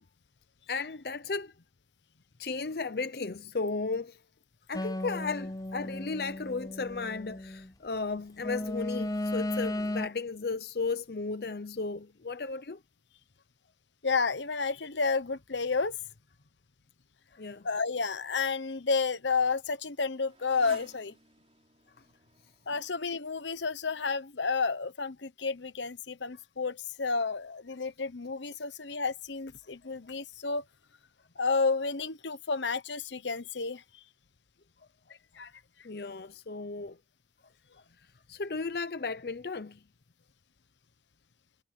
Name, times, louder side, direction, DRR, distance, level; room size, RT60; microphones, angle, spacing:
voice 1, 0.7-1.5 2.4-4.2 4.7-12.8 17.3-17.7 35.8-37.0 38.3-39.8, left 4 dB, 60° left, 0.7 m, -35 dB
sound 1, 4.7-7.7 8.4-10.1, left 1 dB, 20° left, 0.8 m, -35 dB
voice 2, 14.0-16.0 17.6-21.1 22.7-30.6 31.4-33.8 35.4-35.5, left 4 dB, 85° left, 1.1 m, -31 dB
Motorcycle, 18.6-24.0, right 3 dB, 35° right, 5.9 m, -56 dB
head